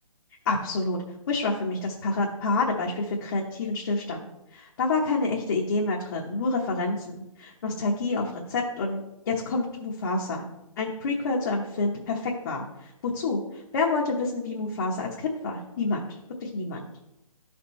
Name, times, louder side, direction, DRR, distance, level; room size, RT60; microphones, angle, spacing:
voice 1, 0.4-1.0 1.3-4.3 4.5-10.5 10.8-16.1 16.4-16.9, left 3 dB, 40° left, -3 dB, 1.0 m, -28 dB
12.5 x 4.5 x 3.1 m, 0.88 s
hypercardioid pair, 155°, 18 cm